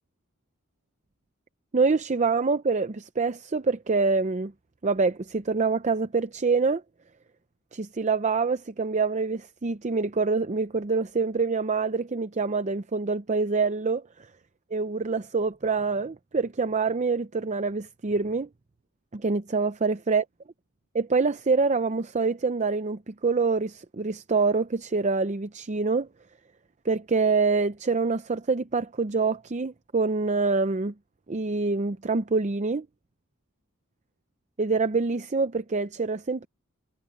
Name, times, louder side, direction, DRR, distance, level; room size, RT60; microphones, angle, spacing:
voice 1, 1.7-4.5 4.8-6.8 7.7-14.3 14.7-18.5 19.1-20.2 20.9-26.1 26.8-30.9 31.3-32.9 34.6-36.5, right 4 dB, 35° right, 0.6 m, -26 dB
head